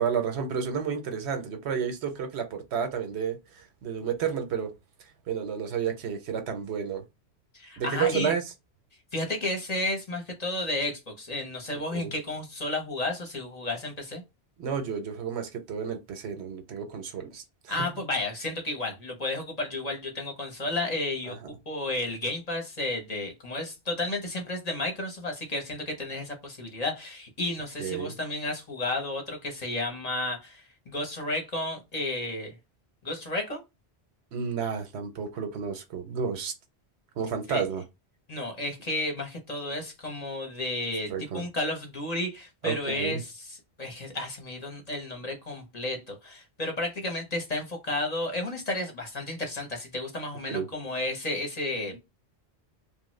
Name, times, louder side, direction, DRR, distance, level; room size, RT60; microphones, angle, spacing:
voice 1, 0.0-4.7 5.0-7.0 7.8-8.4 11.7-12.1 14.6-17.9 21.3-21.6 27.8-28.1 34.3-36.5 37.2-37.8 41.1-41.4 42.6-43.2 50.5-50.7, right 7 dB, 80° right, 0.9 m, -31 dB
voice 2, 7.5-8.3 9.1-14.2 17.7-32.6 33.0-33.6 37.5-37.6 38.3-43.2 43.8-52.0, left 2 dB, 40° left, 0.7 m, -32 dB
3.0 x 2.1 x 3.0 m
omnidirectional pair, 1.1 m